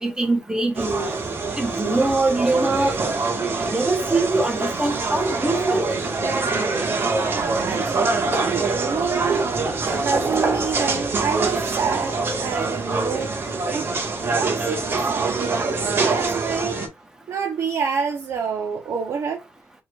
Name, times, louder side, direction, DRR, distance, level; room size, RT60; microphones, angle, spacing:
voice 1, 0.0-1.1 1.6-3.0 3.6-5.9, right 2 dB, 10° right, 1.1 m, -23 dB
sound 1, 0.7-16.9, right 3 dB, 45° right, 1.6 m, -24 dB
sound 2, 7.1-7.7 7.9-9.1 9.6-11.3 12.4-12.5 14.1-14.2 14.5-14.6, right 2 dB, 30° right, 2.0 m, -29 dB
voice 2, 7.6-9.5 10.0-13.3 13.7-13.9 14.3-15.5 15.9-16.8 17.3-19.4, right 6 dB, 70° right, 0.9 m, -27 dB
4.7 x 3.7 x 2.4 m
wide cardioid pair, 140°, 5 cm